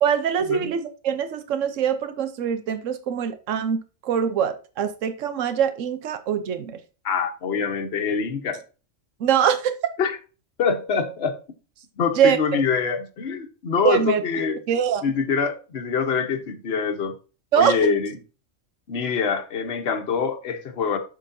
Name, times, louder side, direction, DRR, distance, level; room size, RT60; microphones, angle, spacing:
voice 1, 0.0-6.8 9.2-9.7 12.2-12.6 13.8-14.2 14.7-15.0 17.5-17.7, right 8 dB, 80° right, 1.2 m, -23 dB
voice 2, 7.0-8.6 10.0-10.2 10.6-11.4 12.0-14.6 15.0-17.1 17.5-18.1 18.9-21.0, left 5 dB, 55° left, 1.2 m, -24 dB
7.9 x 7.1 x 2.7 m
omnidirectional pair, 1.3 m